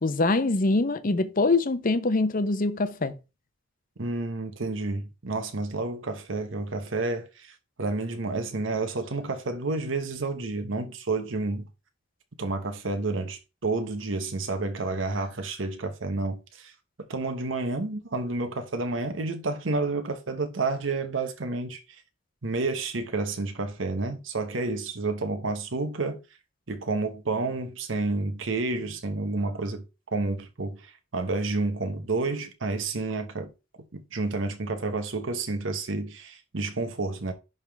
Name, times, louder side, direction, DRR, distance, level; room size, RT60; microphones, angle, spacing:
voice 1, 0.0-3.2, left 3 dB, 45° left, 0.7 m, -24 dB
voice 2, 4.0-11.7 12.4-16.7 17.0-22.0 22.4-26.2 26.7-29.8 30.1-33.5 33.9-37.3, right 3 dB, 80° right, 1.0 m, -30 dB
10.5 x 3.6 x 3.5 m
head